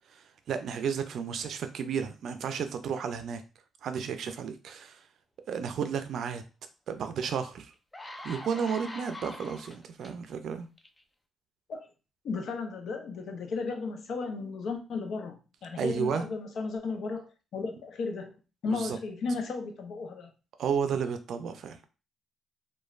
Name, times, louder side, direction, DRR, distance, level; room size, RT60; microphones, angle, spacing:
voice 1, 0.1-3.4 3.8-5.0 5.5-6.4 6.9-7.7 8.2-10.7 15.8-16.3 18.6-19.0 20.6-21.8, right 6 dB, 70° right, 0.4 m, -32 dB
sound 1, 7.2-7.3 7.7-10.1 10.8-11.0, left 1 dB, 15° left, 0.4 m, -43 dB
voice 2, 12.2-18.3 18.6-20.3, left 4 dB, 70° left, 0.6 m, -34 dB
3.1 x 2.2 x 2.4 m
cardioid pair, 90°, 0 cm